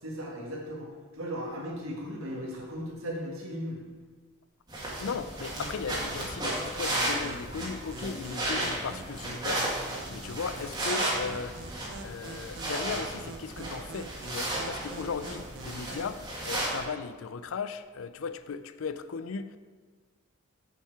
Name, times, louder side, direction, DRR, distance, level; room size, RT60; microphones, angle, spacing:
voice 1, 0.0-3.9, equal, 85° right, -1 dB, 1.9 m, -37 dB
sound 1, 4.7-16.8, right 1 dB, 20° right, 1.9 m, -34 dB
voice 2, 5.0-9.8 10.1-11.7 12.0-19.6, left 5 dB, 80° left, 12 dB, 0.4 m, -37 dB
sound 2, 5.6-16.2, right 2 dB, 65° right, 0.9 m, -45 dB
7.2 x 7.0 x 4.7 m, 1.5 s
head